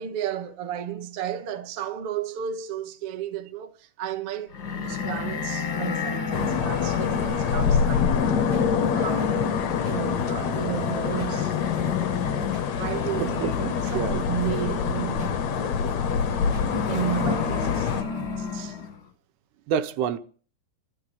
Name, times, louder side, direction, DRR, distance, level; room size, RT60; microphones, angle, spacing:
voice 1, 0.0-8.4 8.9-9.4 9.8-11.6 12.2-12.5 12.8-15.9 16.8-18.8, right 10 dB, 65° right, 1.4 m, -33 dB
sound 1, 4.5-19.0, left 6 dB, 45° left, 1.6 m, -33 dB
sound 2, 6.3-18.0, left 6 dB, 70° left, 1.7 m, -26 dB
sound 3, 7.8-18.7, right 1 dB, 40° right, 2.2 m, -47 dB
voice 2, 13.2-13.5 13.9-14.2 19.7-20.2, right 8 dB, 80° right, 3.1 m, -27 dB
26.0 x 13.5 x 3.6 m
omnidirectional pair, 4.8 m